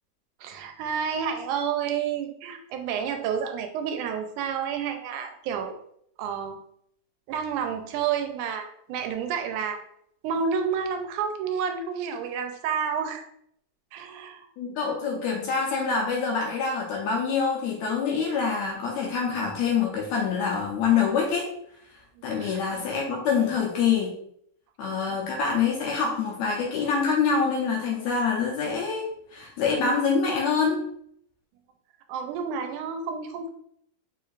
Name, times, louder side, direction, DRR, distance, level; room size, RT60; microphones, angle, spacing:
voice 1, 0.4-5.7 6.2-6.6 7.3-9.8 10.2-13.3 13.9-14.5 22.2-22.6 25.1-25.2 32.1-33.5, right 7 dB, 80° right, 5 dB, 2.0 m, -30 dB
voice 2, 14.6-21.5 22.2-24.1 24.8-29.1 29.3-30.8, left 5 dB, 70° left, -2 dB, 1.9 m, -25 dB
4.7 x 4.4 x 2.4 m, 0.69 s
omnidirectional pair, 3.6 m